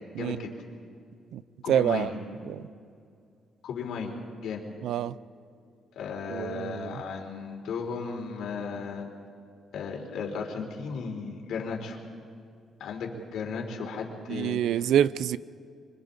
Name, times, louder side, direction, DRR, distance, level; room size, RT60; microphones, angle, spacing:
voice 1, 0.2-0.5 1.6-2.2 3.6-4.2 4.4-4.6 6.0-9.1 9.7-12.0 12.8-14.9, left 5 dB, 80° left, 3.6 m, -35 dB
voice 2, 1.7-2.1 2.5-2.6 4.8-5.1 6.3-7.0 14.3-15.4, right 10 dB, 85° right, 0.5 m, -26 dB
25.5 x 25.0 x 4.1 m
cardioid pair, 160°, 0 cm